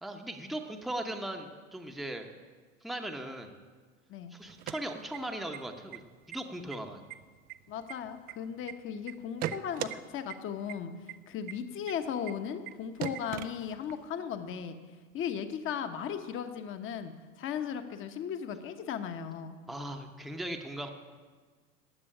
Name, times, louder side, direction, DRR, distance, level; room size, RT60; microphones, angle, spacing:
voice 1, 0.0-2.3 2.8-3.6 4.3-7.0 19.7-20.9, right 1 dB, ahead, 4 dB, 0.9 m, -38 dB
sound 1, 4.4-5.6 5.9-6.0 6.3-6.8 7.1-8.7 9.1-10.0 10.3-10.4 10.7-10.8 11.1-11.2 11.5-11.6 11.9-12.0 12.3-12.4 12.7-12.8 13.0-14.0, right 13 dB, 25° right, 0.4 m, -38 dB
voice 2, 7.7-10.9 11.3-14.8 15.1-19.6, left 8 dB, 30° left, 8 dB, 1.1 m, -37 dB
15.5 x 6.2 x 9.9 m, 1.5 s
hypercardioid pair, 120°, 42 cm